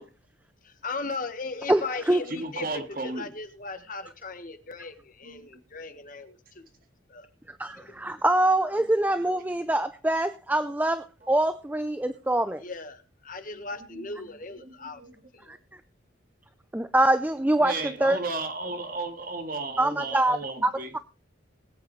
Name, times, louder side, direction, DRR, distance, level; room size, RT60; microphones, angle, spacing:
voice 1, 0.8-6.6 7.1-7.3 12.6-15.0 15.3-15.5, left 3 dB, 45° left, 8 dB, 1.4 m, -37 dB
voice 2, 1.7-2.2 7.5-12.6 15.5-15.6 16.7-17.7 18.0-18.2 19.8-21.0, right 1 dB, 10° right, 11 dB, 0.5 m, -24 dB
voice 3, 2.3-3.3 5.2-5.5 13.5-13.6 13.9-15.2 17.6-20.9, right 3 dB, 45° right, 5 dB, 2.0 m, -35 dB
21.0 x 8.4 x 3.2 m, 0.31 s
head